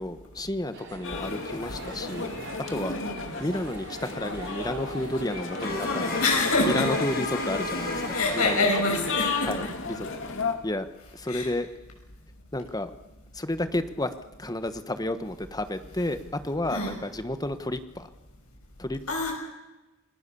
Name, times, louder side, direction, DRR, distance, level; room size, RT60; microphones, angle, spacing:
voice 1, 0.0-2.3 2.7-3.0 3.4-6.2 6.6-8.7 9.4-10.1 10.6-10.9 11.1-11.7 12.5-12.9 13.3-14.1 14.4-18.1 18.8-19.0, left 1 dB, 15° left, 10 dB, 1.3 m, -31 dB
sound 1, 0.7-8.6, right 3 dB, 55° right, 4.8 m, -43 dB
sound 2, 1.0-10.5, left 4 dB, 60° left, 2.5 m, -33 dB
voice 2, 2.7-3.3 6.2-7.1 8.1-9.6 11.3-11.5 16.7-16.9 19.1-19.3, left 2 dB, 85° left, 1 dB, 6.7 m, -26 dB
sound 3, 5.6-9.5, left 3 dB, 45° left, 5.6 m, -35 dB
28.5 x 20.5 x 7.0 m, 1.1 s
head